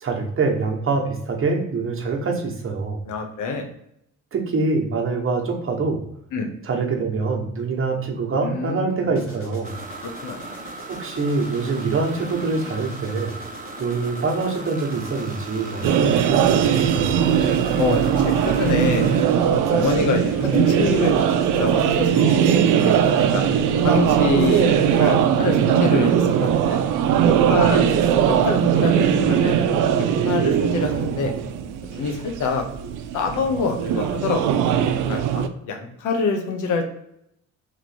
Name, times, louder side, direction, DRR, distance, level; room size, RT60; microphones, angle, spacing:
voice 1, 0.0-3.0 4.3-6.0 6.6-9.8 10.9-13.3 13.8-17.2, right 4 dB, 45° right, 1 dB, 1.1 m, -25 dB
voice 2, 3.1-3.7 6.3-6.5 8.4-9.1 10.0-10.6 17.8-19.1 19.7-22.5 22.8-23.4 23.8-28.0 28.3-29.6 30.2-31.3 31.9-32.6 33.1-34.7 35.1-36.8, left 4 dB, 80° left, 4 dB, 0.9 m, -26 dB
sound 1, 9.2-25.3, left 1 dB, 45° left, 1.4 m, -41 dB
sound 2, 9.6-19.3, right 3 dB, 25° right, 0.7 m, -38 dB
sound 3, 15.8-35.5, right 8 dB, 85° right, 0.5 m, -20 dB
3.0 x 3.0 x 4.2 m, 0.76 s
cardioid pair, 90°, 30 cm